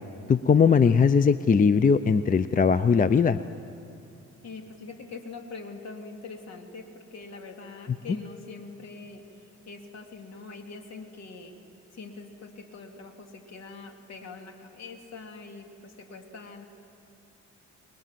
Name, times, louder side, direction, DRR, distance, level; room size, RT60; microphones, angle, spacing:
voice 1, 0.3-3.4 8.1-8.2, left 6 dB, 30° left, 13 dB, 0.6 m, -20 dB
voice 2, 4.4-9.2 9.7-11.5 11.9-16.7, left 4 dB, 60° left, 4 dB, 3.0 m, -43 dB
30.0 x 21.0 x 7.6 m, 2.7 s
cardioid pair, 90°, 30 cm